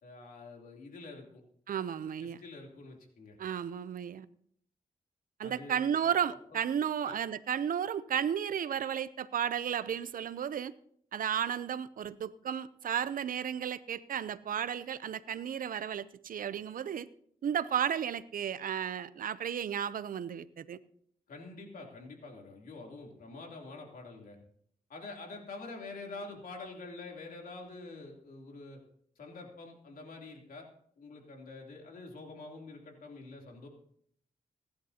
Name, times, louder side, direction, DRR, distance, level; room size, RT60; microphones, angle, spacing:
voice 1, 0.0-1.4 2.2-3.4 5.4-6.1 7.0-7.2 21.3-24.4 24.9-28.8 29.2-30.7 31.0-33.7, left 3 dB, 80° left, 3.1 m, -46 dB
voice 2, 1.7-2.4 3.4-4.3 5.4-10.7 11.1-17.1 17.4-20.8, right 8 dB, 75° right, 0.6 m, -33 dB
25.5 x 11.0 x 2.8 m
cardioid pair, 80°, 14 cm